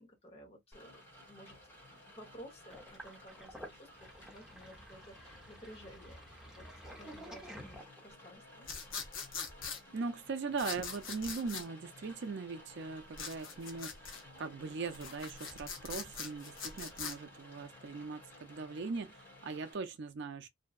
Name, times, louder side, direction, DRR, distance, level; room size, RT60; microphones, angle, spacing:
voice 1, 0.0-1.6 1.9-8.7, equal, 30° left, 0.9 m, -55 dB
Rain, 0.7-19.7, left 1 dB, 10° left, 1.2 m, -56 dB
Sink (filling or washing), 2.7-8.3, equal, 5° right, 0.7 m, -51 dB
sound 1, 8.6-9.8 10.6-11.7 13.1-14.2 14.9-17.2, left 6 dB, 70° left, 0.8 m, -42 dB
voice 2, 9.9-13.9 14.4-20.5, right 4 dB, 60° right, 0.5 m, -40 dB
2.7 x 2.2 x 2.3 m
head